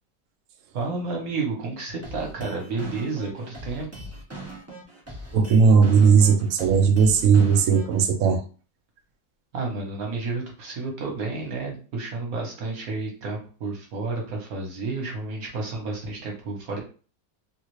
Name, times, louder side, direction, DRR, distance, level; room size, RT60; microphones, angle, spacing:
voice 1, 0.7-3.9 9.5-16.8, right 3 dB, 55° right, 0 dB, 1.4 m, -31 dB
sound 1, 2.0-8.0, right 1 dB, 25° right, 0.3 m, -40 dB
voice 2, 5.3-8.4, right 5 dB, 80° right, 5 dB, 0.7 m, -17 dB
3.1 x 2.4 x 3.1 m, 0.37 s
omnidirectional pair, 1.9 m